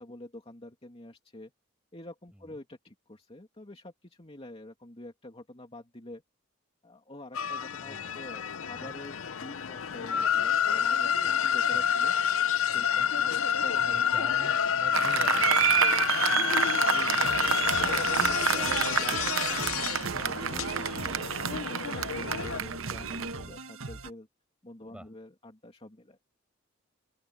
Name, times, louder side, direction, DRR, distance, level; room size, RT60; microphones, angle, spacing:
voice 1, 0.0-1.5 1.9-6.2 6.8-12.1 12.6-13.8 14.4-14.7 16.2-24.3 24.6-26.2, left 1 dB, 30° left, 2.7 m, -47 dB
sound 1, 7.3-22.6, left 8 dB, 80° left, 0.7 m, -28 dB
voice 2, 7.8-8.2 8.7-8.9 11.1-11.9 12.7-13.1 13.8-16.0 24.9-25.1, equal, 5° right, 7.6 m, -48 dB
Applause, 14.9-23.3, right 8 dB, 75° right, 0.9 m, -29 dB
sound 2, 17.2-24.1, right 3 dB, 90° right, 1.7 m, -40 dB
open air
head